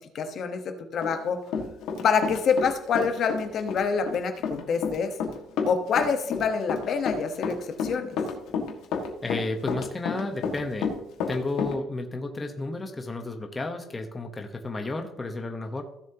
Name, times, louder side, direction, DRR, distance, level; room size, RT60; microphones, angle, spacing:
voice 1, 0.1-1.4 2.0-5.1 5.7-8.1, left 6 dB, 50° left, 6 dB, 1.1 m, -26 dB
Run, 1.0-2.7 3.0-11.7, left 5 dB, 80° left, 1.8 m, -30 dB
voice 2, 9.2-10.9 11.3-15.8, left 2 dB, 20° left, 4 dB, 1.0 m, -32 dB
15.5 x 7.3 x 2.9 m, 0.80 s
cardioid pair, 140°, 0 cm